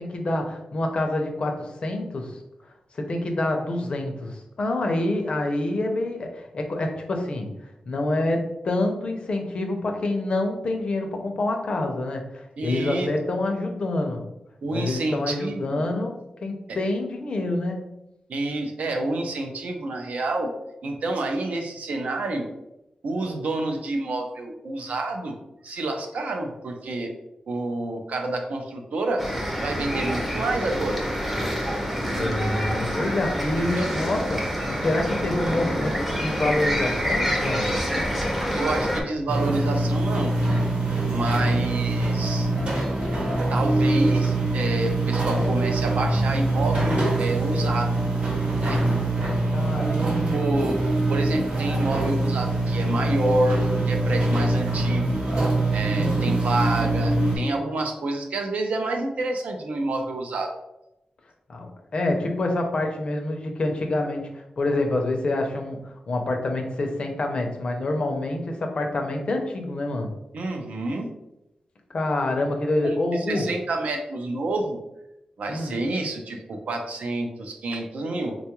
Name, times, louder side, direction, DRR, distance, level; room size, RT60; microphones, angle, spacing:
voice 1, 0.0-2.4 2.9-7.5 7.9-14.2 14.7-16.1 16.4-17.9 32.2-37.7 49.5-51.0 55.9-56.5 61.5-70.1 71.9-73.5 75.5-75.8, left 2 dB, 45° left, 3 dB, 0.5 m, -27 dB
voice 2, 12.6-13.1 14.6-15.8 16.7-16.8 18.3-20.5 20.8-22.5 23.0-25.4 25.6-27.1 27.5-29.2 29.6-31.0 33.6-33.9 38.5-40.3 41.1-42.5 43.5-48.0 48.6-48.8 50.3-50.8 51.1-55.2 55.7-60.5 70.3-71.1 72.8-74.8 75.4-78.4, right 2 dB, 70° right, 3 dB, 0.5 m, -28 dB
sound 1, 29.2-39.0, equal, 10° right, 0.5 m, -27 dB
sound 2, 39.3-57.4, right 2 dB, 55° right, 0.9 m, -23 dB
3.6 x 2.3 x 2.9 m, 0.89 s
wide cardioid pair, 155°, 2 cm